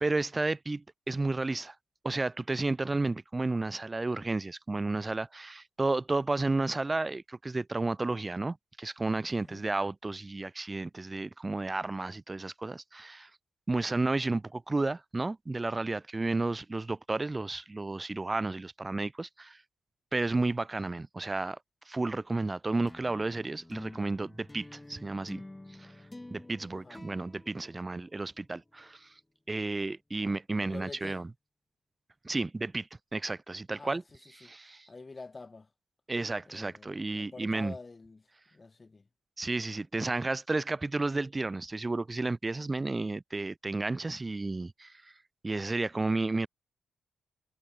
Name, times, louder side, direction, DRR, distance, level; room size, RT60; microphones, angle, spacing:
voice 1, 0.0-1.7 2.0-13.3 13.7-19.6 20.1-21.6 21.9-25.4 25.8-25.9 26.3-29.1 29.5-31.3 32.2-34.0 34.4-34.9 36.1-37.7 39.4-44.9 45.4-46.5, right 2 dB, 25° right, 0.7 m, -32 dB
voice 2, 9.3-9.7 20.2-20.4 26.7-27.0 30.6-31.2 33.7-34.0 34.4-34.5 34.9-35.7 36.5-39.1, left 3 dB, 30° left, 1.4 m, -47 dB
sound 1, 22.9-28.5, left 1 dB, 15° left, 0.9 m, -49 dB
cardioid pair, 60°, 0 cm